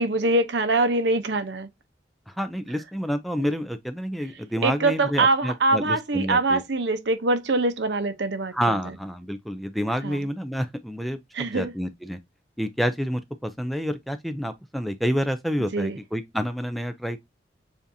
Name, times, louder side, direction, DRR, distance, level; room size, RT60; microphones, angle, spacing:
voice 1, 0.0-1.7 4.6-8.8 10.0-10.3 11.3-11.7 15.7-16.0, right 2 dB, 75° right, 0.8 m, -23 dB
voice 2, 2.3-6.6 8.5-12.2 12.6-17.2, equal, ahead, 0.3 m, -28 dB
7.1 x 2.6 x 2.6 m
head